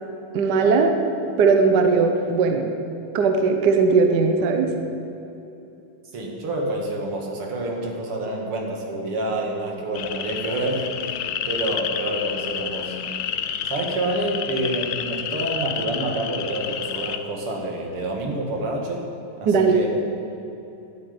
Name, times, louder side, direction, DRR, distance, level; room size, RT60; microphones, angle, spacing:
voice 1, 0.3-1.0 1.4-2.7 3.1-4.7 19.5-19.8, right 4 dB, 55° right, 4 dB, 1.5 m, -18 dB
voice 2, 6.1-13.0 13.6-19.0 19.4-19.9, right 1 dB, 85° right, 0 dB, 2.8 m, -28 dB
sound 1, 9.9-17.2, left 8 dB, 70° left, 0.9 m, -30 dB
11.5 x 9.3 x 9.5 m, 2.9 s
omnidirectional pair, 2.4 m